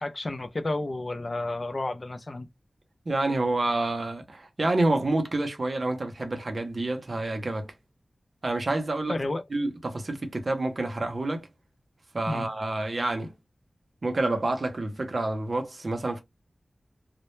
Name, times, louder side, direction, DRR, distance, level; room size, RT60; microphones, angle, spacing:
voice 1, 0.0-2.5 9.1-9.4 12.3-12.5, left 2 dB, 40° left, 0.4 m, -31 dB
voice 2, 3.1-7.7 8.4-9.2 9.5-11.5 12.1-13.3 14.0-16.2, right 2 dB, 50° right, 0.6 m, -28 dB
2.1 x 2.0 x 2.9 m
wide cardioid pair, 100°, 0 cm